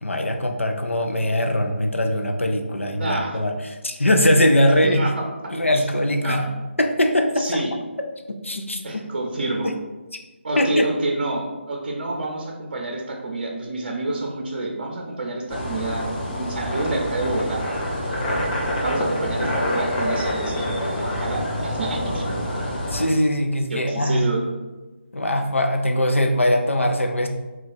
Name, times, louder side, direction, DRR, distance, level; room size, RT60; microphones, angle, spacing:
voice 1, 0.0-5.0 5.5-6.5 6.8-7.6 8.3-8.8 9.6-9.7 10.6-10.9 22.9-24.3 25.1-27.3, left 1 dB, 85° left, 4 dB, 0.5 m, -21 dB
voice 2, 2.7-3.4 4.8-5.1 6.2-6.5 7.4-7.7 8.8-9.7 10.4-17.6 18.8-20.7 21.0-22.2 23.7-24.4, right 2 dB, 45° right, 1 dB, 0.6 m, -28 dB
sound 1, 15.5-23.0, equal, 35° left, 0.7 m, -26 dB
3.1 x 2.4 x 4.0 m, 1.2 s
figure-of-eight pair, 150°, 7 cm